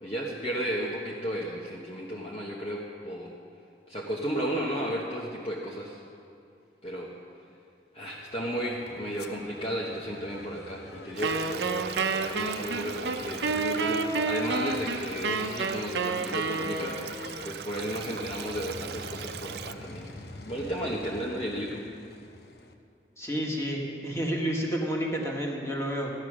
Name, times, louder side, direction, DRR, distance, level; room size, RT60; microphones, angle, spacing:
voice 1, 0.0-3.3 3.9-6.0 6.8-7.1 7.9-17.0 17.4-20.1 20.5-21.8, equal, 35° left, -4 dB, 1.1 m, -34 dB
sound 1, 8.2-22.7, left 2 dB, 70° left, 0.9 m, -46 dB
Stream, 11.2-19.7, right 7 dB, 65° right, 0.4 m, -41 dB
Wind instrument woodwind instrument, 11.2-17.2, right 4 dB, 90° right, 0.8 m, -29 dB
voice 2, 23.2-26.1, equal, 15° left, -2 dB, 1.7 m, -30 dB
14.5 x 10.5 x 6.2 m, 2.5 s
head